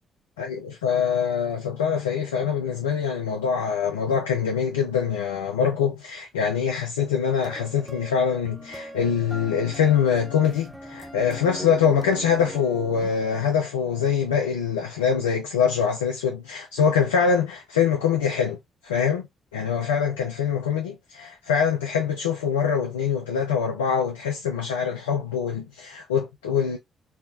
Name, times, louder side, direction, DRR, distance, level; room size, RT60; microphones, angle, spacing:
voice 1, 0.4-18.6 18.8-19.3 19.5-26.8, left 7 dB, 80° left, 0.4 m, -24 dB
sound 1, 7.3-13.1, equal, 10° right, 0.9 m, -41 dB
3.4 x 2.1 x 2.3 m
figure-of-eight pair, 40°, 0 cm